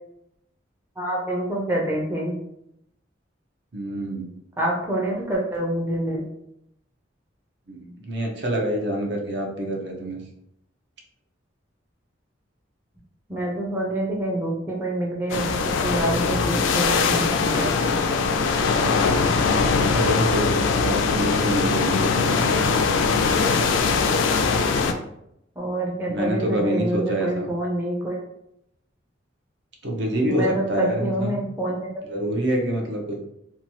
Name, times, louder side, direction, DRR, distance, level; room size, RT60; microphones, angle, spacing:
voice 1, 1.0-2.4 4.6-6.3 13.3-18.0 25.6-28.2 30.3-31.8, right 1 dB, 10° right, -3 dB, 0.4 m, -26 dB
voice 2, 3.7-4.3 7.7-10.2 18.8-19.0 19.7-22.6 26.1-27.5 29.8-31.4 32.1-33.2, right 1 dB, 60° right, 1 dB, 0.6 m, -27 dB
sound 1, 15.3-24.9, left 4 dB, 75° left, 0.3 m, -21 dB
2.9 x 2.2 x 2.8 m, 0.78 s
head